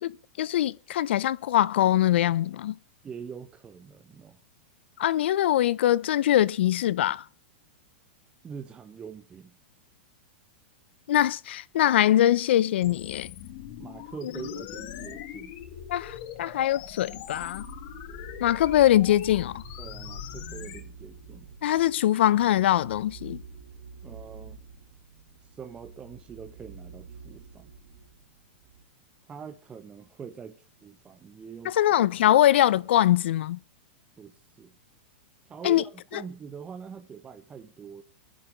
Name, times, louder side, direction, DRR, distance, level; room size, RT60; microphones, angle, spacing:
voice 1, 0.0-2.8 5.0-7.2 11.1-13.3 15.9-17.7 18.4-19.6 21.6-23.4 31.6-33.6 35.6-35.9 36.1-36.2, left 12 dB, 70° left, 0.6 m, -23 dB
voice 2, 3.0-4.4 8.4-9.6 13.8-15.5 19.8-21.5 24.0-24.6 25.5-27.7 29.3-31.8 32.3-32.4 34.2-34.7 35.4-38.0, right 6 dB, 15° right, 0.8 m, -43 dB
sound 1, 12.8-20.8, left 10 dB, 50° left, 2.0 m, -41 dB
sound 2, 17.1-28.8, right 5 dB, 55° right, 2.5 m, -48 dB
28.5 x 10.5 x 3.2 m
hypercardioid pair, 140°, 6 cm